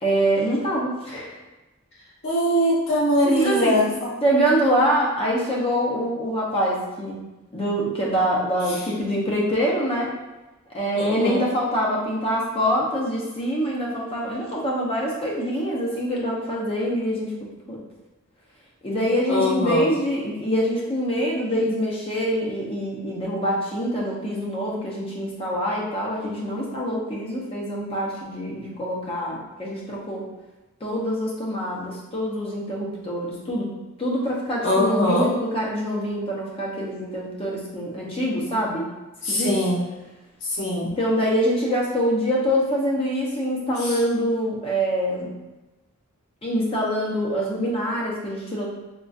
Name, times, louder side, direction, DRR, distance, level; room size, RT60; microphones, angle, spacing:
voice 1, 0.0-1.4 3.2-3.8 4.2-7.2 7.5-10.1 10.7-17.3 17.7-17.8 18.8-30.2 30.8-33.7 34.0-38.9 39.3-39.5 40.8-45.3 46.4-48.7, equal, 25° left, -4 dB, 0.6 m, -25 dB
voice 2, 2.2-4.1 10.9-11.4 19.3-19.9 34.6-35.3 39.2-39.8 40.5-40.9 43.8-43.9, left 1 dB, 55° left, -7 dB, 1.0 m, -22 dB
3.8 x 2.4 x 2.4 m, 1.1 s
head